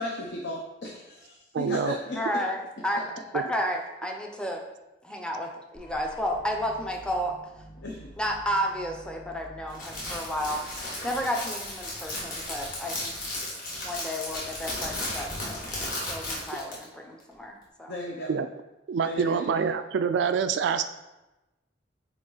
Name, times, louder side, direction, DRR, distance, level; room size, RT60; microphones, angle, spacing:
voice 1, 0.0-2.2 7.8-8.1 17.9-18.3 19.0-19.5, left 1 dB, 65° left, -2 dB, 0.8 m, -35 dB
voice 2, 1.5-2.0 3.3-3.4 18.3-18.5 18.9-20.8, right 6 dB, 70° right, 9 dB, 0.3 m, -26 dB
voice 3, 2.2-4.6 5.0-7.4 8.2-10.6 11.0-13.1 13.8-17.9, equal, 5° left, 1 dB, 0.6 m, -32 dB
sound 1, 5.7-11.7, right 1 dB, 25° left, 1.2 m, -50 dB
Crackle, 9.7-16.8, left 1 dB, 45° left, 1.9 m, -35 dB
8.9 x 3.0 x 3.9 m, 1.0 s
head